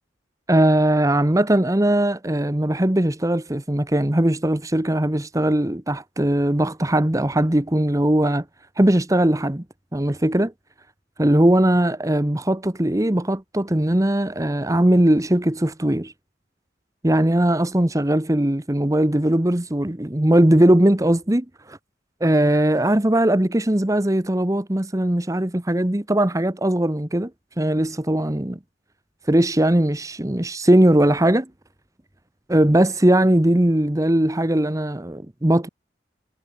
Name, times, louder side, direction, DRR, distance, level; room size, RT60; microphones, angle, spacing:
voice 1, 0.5-8.4 8.8-9.6 9.9-10.5 11.2-16.1 17.0-21.8 22.2-27.3 27.6-28.6 29.3-31.5 32.5-35.7, right 1 dB, 15° right, 1.0 m, -19 dB
head